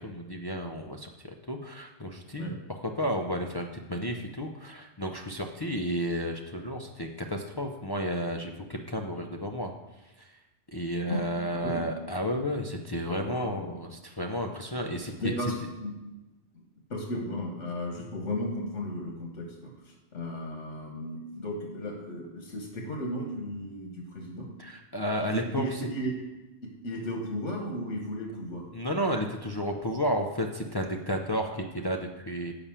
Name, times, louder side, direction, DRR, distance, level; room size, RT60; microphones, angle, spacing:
voice 1, 0.0-9.7 10.2-10.4 10.7-15.3 24.6-25.9 28.7-32.5, equal, 35° left, 2 dB, 0.4 m, -32 dB
voice 2, 11.5-11.9 13.1-13.7 15.2-15.9 16.5-16.6 16.9-24.5 25.2-26.1 26.6-28.7, left 1 dB, 85° left, 1 dB, 1.5 m, -35 dB
6.8 x 5.5 x 7.3 m, 1.1 s
omnidirectional pair, 1.2 m